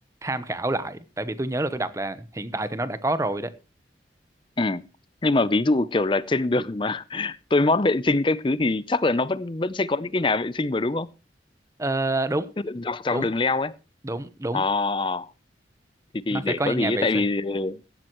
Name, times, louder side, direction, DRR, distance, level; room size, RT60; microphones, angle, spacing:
voice 1, 0.2-3.5 11.8-12.5 13.1-13.3 14.0-14.6 16.3-17.3, right 2 dB, 15° right, 0.9 m, -28 dB
voice 2, 5.2-11.1 12.6-13.7 14.5-15.3 16.1-17.8, left 2 dB, 25° left, 0.5 m, -24 dB
16.0 x 12.0 x 3.0 m
head